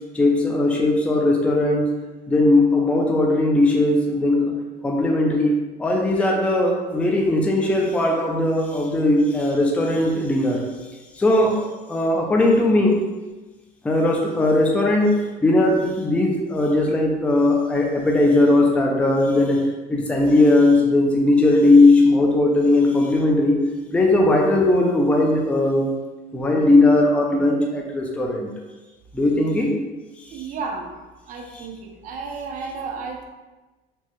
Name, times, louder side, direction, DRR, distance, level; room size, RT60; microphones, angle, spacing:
voice 1, 0.1-1.9 2.3-4.5 4.8-5.5 5.8-10.6 11.2-11.6 11.9-13.0 13.8-19.6 19.9-23.6 23.9-25.9 26.3-28.5 29.1-29.7, left 2 dB, 5° left, -1 dB, 0.4 m, -18 dB
voice 2, 30.3-30.9 31.3-33.2, right 4 dB, 50° right, 2 dB, 0.5 m, -32 dB
4.4 x 2.0 x 2.9 m, 1.2 s
cardioid pair, 160°, 17 cm